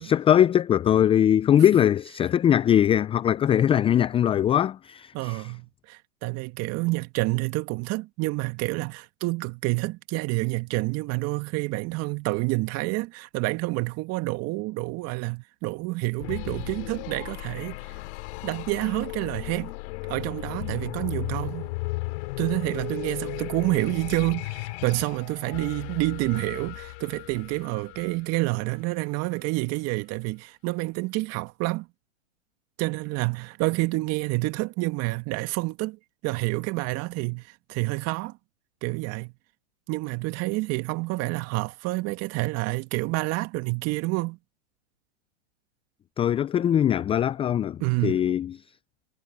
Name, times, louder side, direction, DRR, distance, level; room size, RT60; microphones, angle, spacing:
voice 1, 0.0-5.5 46.2-48.6, left 10 dB, 15° left, 0.5 m, -21 dB
voice 2, 5.1-17.8 18.4-19.7 20.1-21.7 22.4-31.9 32.8-38.3 38.8-39.3 39.9-44.4 47.8-48.2, right 23 dB, 40° right, 1.9 m, -28 dB
sound 1, 16.2-28.9, left 24 dB, 55° left, 5.4 m, -36 dB
hypercardioid pair, 115°, 37 cm